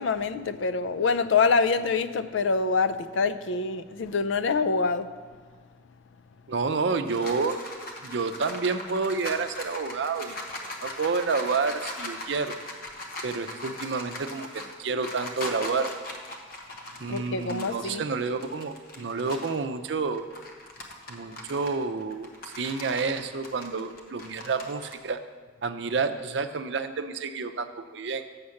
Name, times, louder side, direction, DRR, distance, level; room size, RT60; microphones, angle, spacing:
voice 1, 0.0-5.1 17.1-18.0, left 4 dB, 80° left, 12 dB, 0.4 m, -25 dB
voice 2, 6.5-7.6 8.0-10.4 10.8-12.5 13.2-15.9 17.0-20.2 21.1-25.2 25.6-28.2, right 4 dB, 65° right, 9 dB, 0.5 m, -29 dB
sound 1, 6.7-19.6 20.0-24.9, left 1 dB, 50° left, 1.0 m, -40 dB
6.5 x 6.4 x 7.1 m, 1.5 s
head